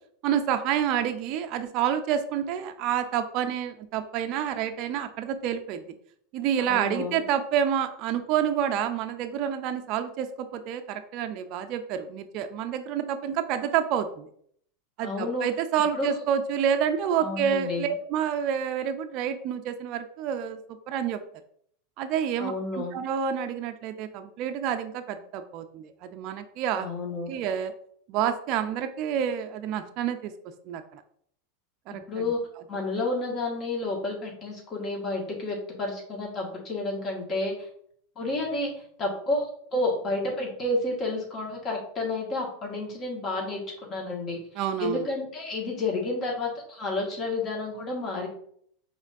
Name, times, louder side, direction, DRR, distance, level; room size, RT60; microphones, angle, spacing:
voice 1, 0.2-5.8 6.3-14.3 15.0-21.2 22.0-26.9 27.3-27.7 28.1-30.3 30.7-31.0 31.9-32.3 44.6-45.1, right 8 dB, 50° right, 7 dB, 0.4 m, -28 dB
voice 2, 6.7-7.2 15.0-15.5 15.9-16.1 17.2-17.9 22.4-23.0 26.8-27.3 32.1-32.4 32.7-37.5 38.1-38.7 39.0-43.6 43.9-44.4 44.8-48.3, left 2 dB, 35° left, -2 dB, 1.7 m, -30 dB
5.0 x 3.5 x 2.6 m, 0.64 s
hypercardioid pair, 90°, 0 cm